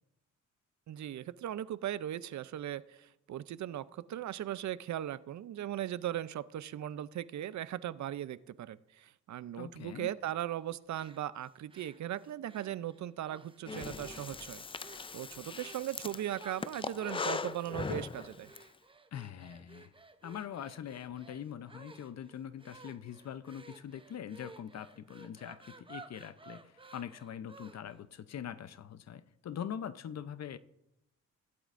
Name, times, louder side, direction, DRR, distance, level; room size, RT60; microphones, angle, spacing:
voice 1, 0.9-18.5, right 12 dB, 60° right, 0.5 m, -38 dB
voice 2, 9.5-10.1 19.1-19.9 20.2-30.6, left 9 dB, 55° left, 0.6 m, -43 dB
sound 1, 10.9-13.6 14.0-14.5 14.8-15.2 15.6-15.9 16.3-28.0, right 3 dB, 15° right, 0.7 m, -55 dB
Breathing, 13.7-18.6, left 4 dB, 20° left, 0.3 m, -40 dB
16.5 x 11.5 x 2.5 m
cardioid pair, 100°, 32 cm